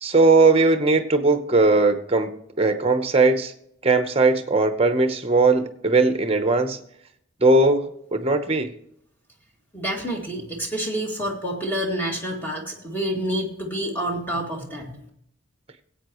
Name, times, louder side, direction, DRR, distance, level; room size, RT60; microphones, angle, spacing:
voice 1, 0.0-2.3 2.6-3.5 3.8-6.8 7.4-8.7, right 3 dB, 30° right, 8 dB, 0.9 m, -19 dB
voice 2, 9.7-15.1, right 1 dB, 10° left, -1 dB, 2.1 m, -28 dB
19.0 x 8.5 x 3.1 m, 0.72 s
head